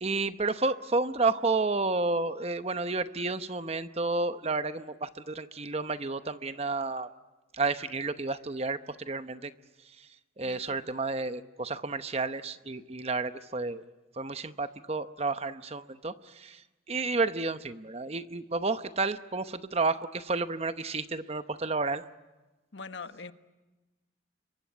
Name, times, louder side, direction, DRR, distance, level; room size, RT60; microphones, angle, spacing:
voice 1, 0.0-7.1 7.5-9.5 10.4-13.8 14.2-16.6 16.9-22.0, right 3 dB, 30° right, 11 dB, 0.9 m, -31 dB
voice 2, 10.4-10.9 22.7-23.3, left 4 dB, 65° left, 10 dB, 1.2 m, -43 dB
26.5 x 23.5 x 9.4 m, 1.1 s
head